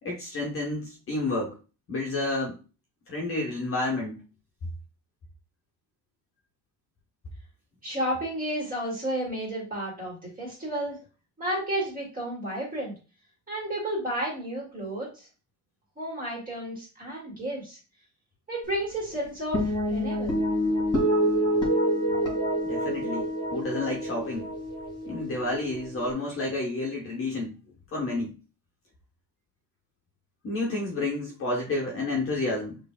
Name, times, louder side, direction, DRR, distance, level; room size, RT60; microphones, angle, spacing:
voice 1, 0.0-1.6 1.9-2.6 3.1-4.2 22.6-24.5 25.0-27.6 27.9-28.3 30.4-32.8, left 2 dB, 30° left, -2 dB, 1.1 m, -30 dB
voice 2, 7.8-11.0 11.4-12.9 13.5-15.3 16.0-17.8 18.5-20.4, right 1 dB, 20° right, -4 dB, 2.3 m, -32 dB
sound 1, 19.5-26.1, equal, 10° left, 2.2 m, -27 dB
6.5 x 3.4 x 2.3 m, 0.33 s
cardioid pair, 155°, 42 cm